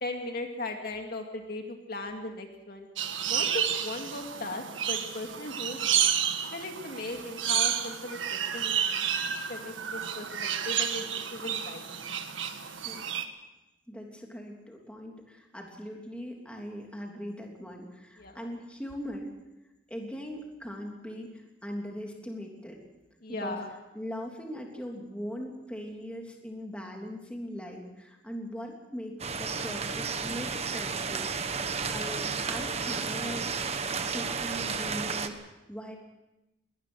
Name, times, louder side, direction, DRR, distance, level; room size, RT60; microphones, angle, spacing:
voice 1, 0.0-2.9 3.3-6.1 6.5-12.1 18.2-18.5 23.2-23.7, left 2 dB, 50° left, 3 dB, 2.4 m, -38 dB
sound 1, 3.0-13.2, right 9 dB, 90° right, 1.7 m, -31 dB
voice 2, 12.8-13.2 13.9-19.3 19.9-22.8 23.3-33.5 34.1-36.0, equal, 5° left, 0 dB, 3.2 m, -40 dB
sound 2, 29.2-35.3, right 5 dB, 35° right, 1.3 m, -32 dB
22.5 x 20.0 x 6.4 m, 0.96 s
head